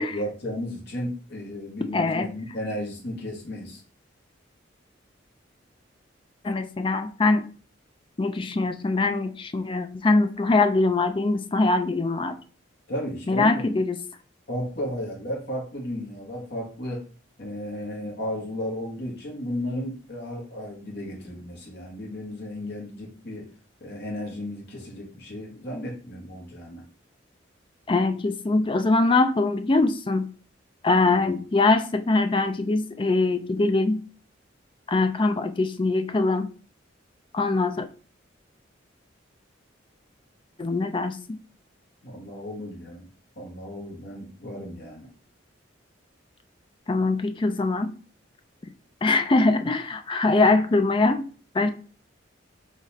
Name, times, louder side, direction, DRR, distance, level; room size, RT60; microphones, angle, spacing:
voice 1, 0.0-3.8 12.9-13.6 14.5-17.0 17.4-23.5 23.8-26.8 31.1-31.3 42.0-43.1 43.4-45.1, equal, 60° left, 1.4 m, -34 dB
voice 2, 1.9-2.3 6.4-7.4 8.2-12.3 13.3-14.0 27.9-30.3 30.8-34.0 34.9-36.5 37.3-37.8 40.6-41.4 46.9-47.9 49.0-51.2 51.5-51.7, left 3 dB, 25° left, 0.4 m, -22 dB
4.0 x 3.1 x 4.1 m
head